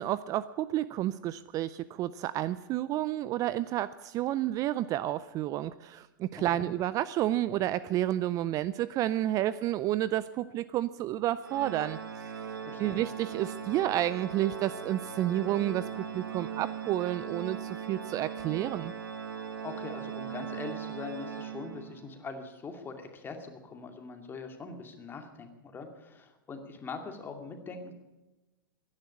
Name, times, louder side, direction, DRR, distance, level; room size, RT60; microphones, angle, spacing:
voice 1, 0.0-12.3 12.8-15.9 16.1-18.9, right 13 dB, 30° right, 17 dB, 0.4 m, -30 dB
voice 2, 6.4-6.7 12.6-13.0 19.6-27.9, left 4 dB, 20° left, 5 dB, 2.4 m, -42 dB
Organ, 11.4-22.1, right 7 dB, 90° right, 1.8 m, -39 dB
15.5 x 10.5 x 8.5 m, 1.1 s
hypercardioid pair, 115°, 11 cm